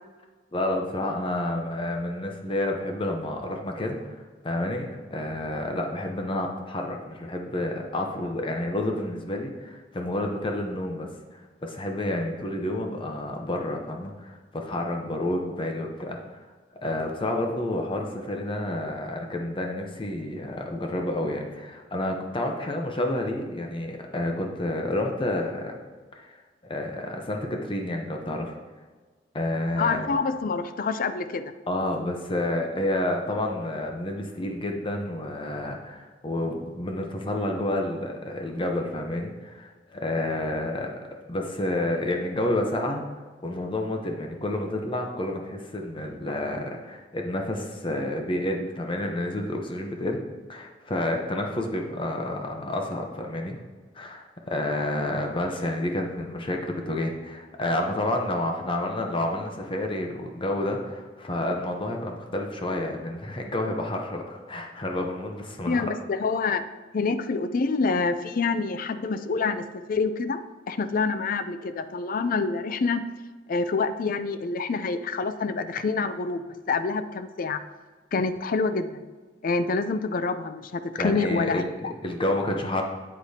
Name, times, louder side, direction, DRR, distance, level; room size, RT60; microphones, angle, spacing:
voice 1, 0.5-16.5 16.8-25.8 26.1-26.4 26.6-28.5 29.3-30.2 31.7-43.0 43.4-50.2 50.5-53.6 53.9-65.8 81.0-82.8, left 1 dB, 30° left, 2 dB, 0.8 m, -29 dB
voice 2, 29.8-31.5 65.7-66.6 66.9-73.1 73.5-77.6 78.1-79.0 79.4-81.9, left 4 dB, 50° left, 11 dB, 0.5 m, -27 dB
8.4 x 8.0 x 2.8 m, 1.4 s
head